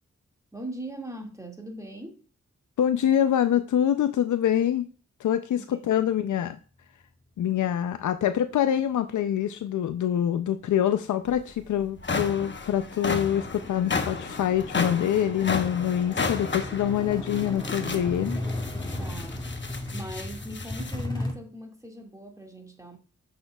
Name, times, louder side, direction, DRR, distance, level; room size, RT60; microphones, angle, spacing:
voice 1, 0.5-2.2 5.6-5.9 19.0-19.5 19.9-23.0, right 1 dB, 10° right, 1 dB, 1.9 m, -40 dB
voice 2, 2.8-4.9 5.2-6.6 7.4-18.4, left 10 dB, 90° left, 10 dB, 0.4 m, -25 dB
sound 1, 11.3-11.4 11.8-21.0, left 4 dB, 40° left, 1.0 m, -33 dB
sound 2, 12.0-12.1 12.5-21.3, left 1 dB, 15° left, 2.1 m, -36 dB
7.7 x 6.5 x 2.3 m, 0.38 s
cardioid pair, 50°, 29 cm